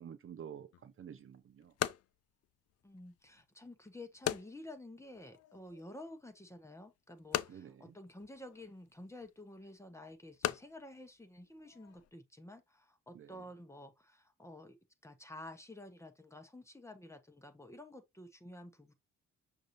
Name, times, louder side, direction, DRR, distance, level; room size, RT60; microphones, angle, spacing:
voice 1, 0.0-1.7 7.5-7.9 13.1-13.4, right 8 dB, 45° right, 0.6 m, -50 dB
sound 1, 0.7-12.1, left 12 dB, 55° left, 0.5 m, -43 dB
voice 2, 2.8-14.8 15.0-18.9, left 1 dB, 10° left, 1.1 m, -51 dB
6.3 x 2.7 x 3.0 m
cardioid pair, 90°, 30 cm